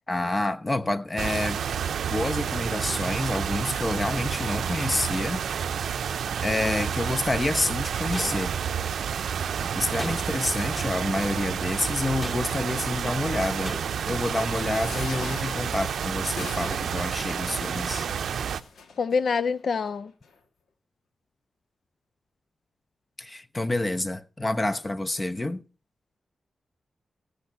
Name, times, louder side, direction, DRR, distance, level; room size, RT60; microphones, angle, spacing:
voice 1, 0.1-1.6 2.1-5.4 5.8-8.5 9.7-13.8 14.1-18.1 23.2-25.6, left 2 dB, 30° left, 0.9 m, -28 dB
sound 1, 1.2-18.6, right 7 dB, 85° right, 0.5 m, -30 dB
sound 2, 8.1-8.8 9.9-10.6 12.2-12.8 13.6-14.2, equal, 5° left, 1.6 m, -38 dB
sound 3, 14.7-19.2 19.9-20.0 20.2-20.3, left 4 dB, 85° left, 1.5 m, -42 dB
voice 2, 19.0-20.1, left 5 dB, 70° left, 0.5 m, -25 dB
15.5 x 6.6 x 5.5 m
cardioid pair, 55°, 0 cm